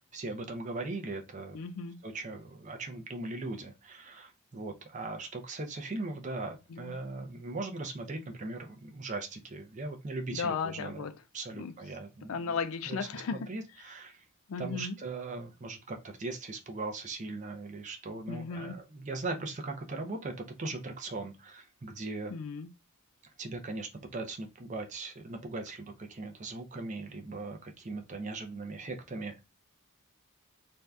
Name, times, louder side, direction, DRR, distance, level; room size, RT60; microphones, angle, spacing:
voice 1, 0.1-1.6 2.0-11.1 11.3-12.6 12.9-14.2 14.6-22.3 23.4-29.4, right 3 dB, 35° right, 0.5 m, -39 dB
voice 2, 1.5-2.0 6.7-6.9 10.3-11.1 11.6-11.7 12.3-13.5 14.5-15.0 18.3-18.8 22.3-22.7, left 5 dB, 70° left, 0.4 m, -35 dB
2.6 x 2.3 x 3.2 m
head